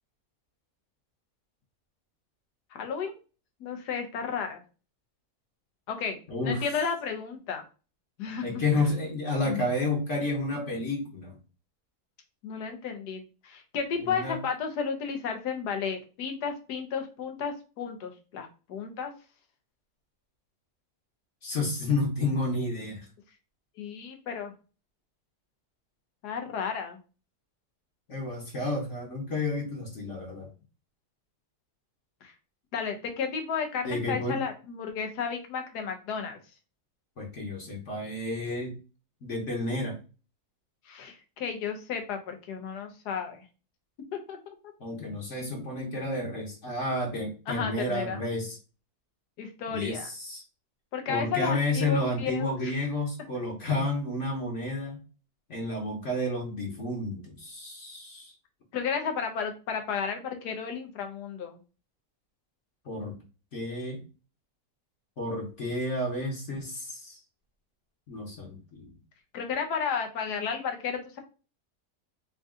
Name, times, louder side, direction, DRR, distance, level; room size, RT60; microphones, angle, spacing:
voice 1, 2.7-3.2 3.6-4.6 5.9-6.2 6.4-7.6 8.2-8.6 9.4-9.6 12.4-19.1 23.8-24.5 26.2-27.0 32.2-32.3 32.7-36.4 40.9-43.4 44.1-44.5 47.5-48.2 49.4-50.1 50.9-52.7 58.7-61.6 69.3-71.2, left 6 dB, 90° left, 5 dB, 1.4 m, -33 dB
voice 2, 6.3-6.7 8.4-11.3 14.0-14.4 21.4-23.1 28.1-30.5 33.8-34.4 37.2-38.8 39.2-40.0 44.8-48.6 49.7-50.4 51.1-55.0 55.5-58.3 62.8-63.2 63.5-64.0 65.2-67.2 68.1-68.9, left 2 dB, 55° left, -1 dB, 1.2 m, -31 dB
3.8 x 2.6 x 3.6 m, 0.34 s
omnidirectional pair, 1.7 m